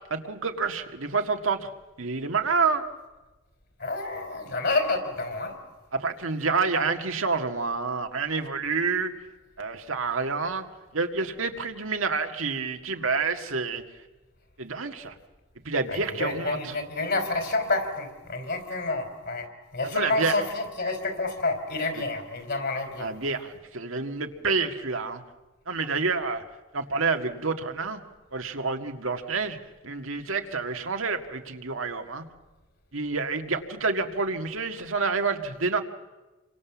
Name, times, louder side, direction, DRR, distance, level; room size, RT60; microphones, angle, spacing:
voice 1, 0.1-1.7 2.0-2.9 5.9-9.1 9.6-10.7 10.9-13.8 14.6-15.1 15.7-16.6 19.9-20.3 23.0-25.2 25.7-26.4 26.7-28.0 28.3-29.6 29.8-32.2 32.9-35.8, right 4 dB, 85° right, 5 dB, 1.9 m, -28 dB
voice 2, 3.8-5.6 15.9-19.5 19.7-23.2, left 3 dB, 55° left, 6 dB, 4.5 m, -29 dB
28.0 x 24.5 x 7.3 m, 1.2 s
head